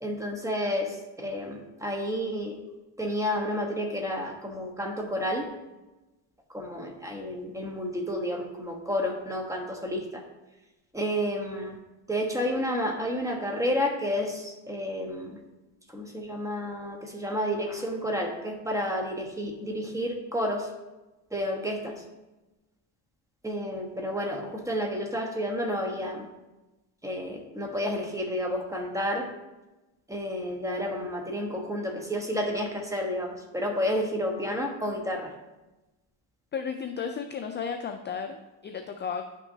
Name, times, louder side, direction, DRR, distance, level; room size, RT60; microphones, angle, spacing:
voice 1, 0.0-2.6 3.0-5.4 6.5-10.2 10.9-11.8 12.1-15.4 15.9-20.7 21.3-22.0 23.4-26.3 27.0-29.3 30.1-35.3, equal, 5° right, 2 dB, 1.1 m, -30 dB
voice 2, 36.5-38.4 38.6-39.2, left 6 dB, 25° left, 5 dB, 0.3 m, -33 dB
10.5 x 6.0 x 2.8 m, 1.1 s
cardioid pair, 120°, 48 cm